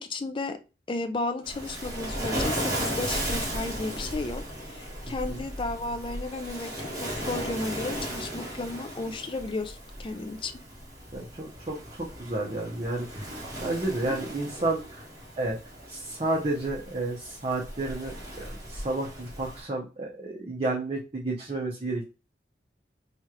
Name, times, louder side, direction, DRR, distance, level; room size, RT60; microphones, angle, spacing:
voice 1, 0.1-0.6 0.9-4.4 4.7-10.5, left 3 dB, 30° left, 0.4 m, -33 dB
Waves surf, 1.4-19.6, equal, 20° right, 1.3 m, -36 dB
voice 2, 5.0-5.4 11.1-15.0 15.4-15.6 15.9-22.0, right 2 dB, 35° right, 0.8 m, -31 dB
3.2 x 2.4 x 4.2 m
head